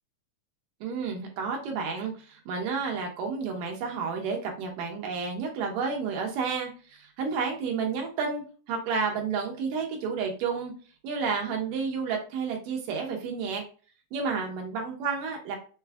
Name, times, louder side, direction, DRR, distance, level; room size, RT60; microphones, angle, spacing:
voice 1, 0.8-10.7 11.0-13.6 14.1-15.6, right 5 dB, 75° right, 1 dB, 2.6 m, -31 dB
6.5 x 2.3 x 3.4 m, 0.38 s
omnidirectional pair, 3.9 m